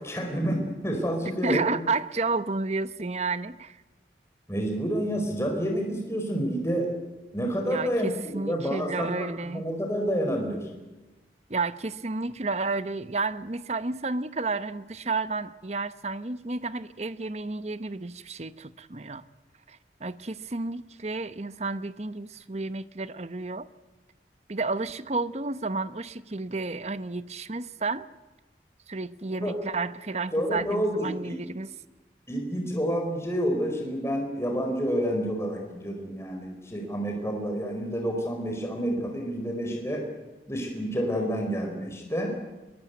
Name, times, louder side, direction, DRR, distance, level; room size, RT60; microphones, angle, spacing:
voice 1, 0.0-1.8 4.5-6.9 7.3-10.7 29.4-29.5 30.3-31.3 32.3-40.0 40.5-42.4, equal, 15° left, 2 dB, 4.6 m, -29 dB
voice 2, 1.4-3.8 7.6-9.7 11.5-19.2 19.7-23.7 24.5-28.1 28.9-31.7, right 3 dB, 40° right, 13 dB, 0.9 m, -31 dB
22.5 x 22.5 x 9.4 m, 1.1 s
head